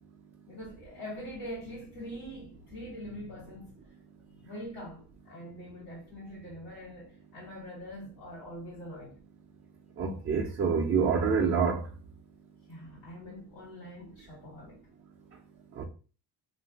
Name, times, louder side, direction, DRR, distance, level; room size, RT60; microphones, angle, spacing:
voice 1, 0.5-3.8 4.4-9.2 12.7-14.8, equal, 80° left, 1.3 m, -43 dB
voice 2, 10.0-11.8 15.8-15.9, right 5 dB, 35° right, 0.4 m, -26 dB
2.9 x 2.6 x 2.3 m
cardioid pair, 85°, 41 cm